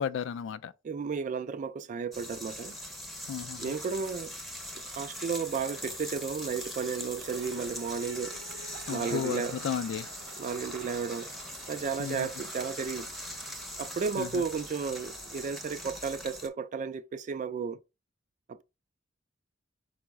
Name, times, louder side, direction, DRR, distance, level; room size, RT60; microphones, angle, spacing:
voice 1, 0.0-0.7 3.3-3.7 8.9-10.1 12.0-12.3 14.2-14.4, left 7 dB, 65° left, 0.3 m, -34 dB
voice 2, 0.8-2.8 3.6-4.3 4.8-8.4 8.9-9.6 10.4-11.3 11.7-13.1 13.8-17.8 18.5-18.6, right 5 dB, 40° right, 0.3 m, -33 dB
sound 1, 2.1-16.5, equal, ahead, 0.6 m, -41 dB
sound 2, 7.2-16.0, right 4 dB, 65° right, 0.7 m, -49 dB
4.5 x 2.1 x 4.5 m
head